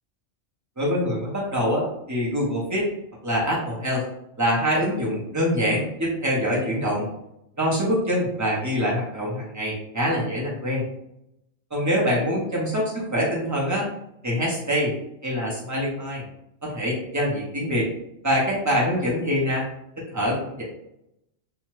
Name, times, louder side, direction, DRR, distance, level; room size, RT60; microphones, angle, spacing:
voice 1, 0.8-2.9 3.2-4.0 4.4-7.1 7.6-10.8 11.7-12.8 13.1-13.9 14.2-14.9 15.2-16.3 16.6-17.9 18.2-19.6 20.0-20.6, equal, 15° right, -5 dB, 0.6 m, -24 dB
2.8 x 2.3 x 3.1 m, 0.80 s
omnidirectional pair, 1.4 m